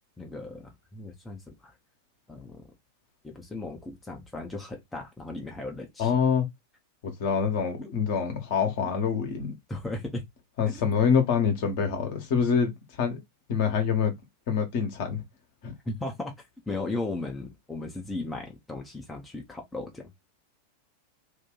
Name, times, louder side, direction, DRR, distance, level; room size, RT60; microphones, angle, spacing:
voice 1, 0.2-1.7 2.3-2.7 3.2-6.1 7.8-8.3 9.7-10.2 10.7-10.8 15.8-16.3 16.7-20.1, left 2 dB, 10° left, 0.9 m, -36 dB
voice 2, 6.0-6.5 7.0-9.5 10.6-13.2 13.5-14.1 14.5-15.2 15.6-15.7, left 6 dB, 50° left, 1.2 m, -26 dB
2.9 x 2.7 x 3.8 m
figure-of-eight pair, 90°, 0 cm